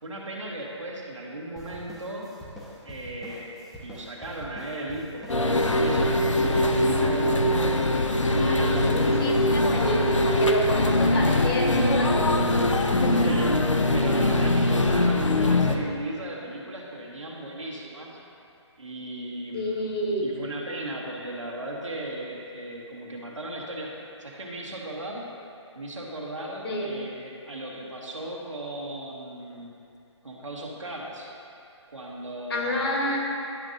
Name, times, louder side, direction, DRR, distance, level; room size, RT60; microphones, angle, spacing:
voice 1, 0.0-2.3 2.8-3.5 3.8-7.5 8.3-9.2 13.1-13.5 13.9-18.2 18.8-19.9 20.2-23.9 24.2-25.3 25.7-29.7 30.2-31.3 31.9-33.0, right 1 dB, 80° right, -3 dB, 1.6 m, -36 dB
sound 1, 1.6-10.4, equal, ahead, 0.8 m, -44 dB
sound 2, 5.3-15.8, left 1 dB, 85° left, 0.7 m, -22 dB
voice 2, 8.4-12.5 13.0-13.3 19.5-20.3 26.6-27.0 32.5-33.2, left 1 dB, 50° left, -2 dB, 1.7 m, -29 dB
11.5 x 6.2 x 2.7 m, 2.6 s
figure-of-eight pair, 145°, 16 cm